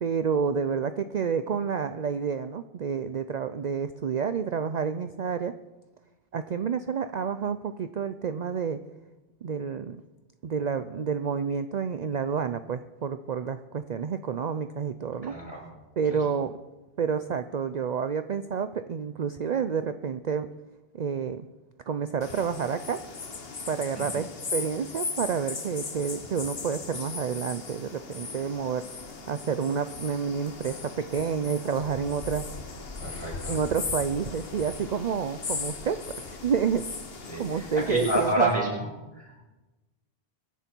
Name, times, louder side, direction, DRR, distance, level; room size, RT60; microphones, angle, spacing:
voice 1, 0.0-5.5 6.3-8.8 9.4-10.0 10.4-15.4 16.0-16.5 17.0-20.5 20.9-21.5 21.9-23.0 23.7-24.3 24.5-28.9 29.3-32.6 33.5-36.0 36.3-36.9 37.4-38.5, right 6 dB, 50° right, 10 dB, 0.6 m, -29 dB
voice 2, 15.2-15.6 16.1-16.2 23.9-24.0 33.0-33.6 37.3-38.9 39.1-39.3, right 1 dB, 25° left, -4 dB, 6.6 m, -28 dB
sound 1, 22.2-38.3, left 4 dB, 70° left, 1.5 m, -38 dB
23.0 x 11.0 x 4.5 m, 1.1 s
omnidirectional pair, 1.0 m